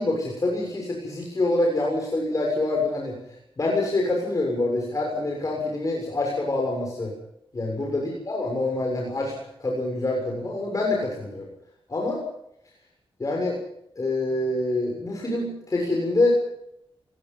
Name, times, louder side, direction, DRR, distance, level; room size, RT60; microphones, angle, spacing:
voice 1, 0.0-3.2 3.6-7.1 7.5-11.5 11.9-12.2 13.2-13.6 14.0-16.4, left 2 dB, 40° left, 0 dB, 6.9 m, -26 dB
25.0 x 19.5 x 5.7 m, 0.78 s
cardioid pair, 85°, 9 cm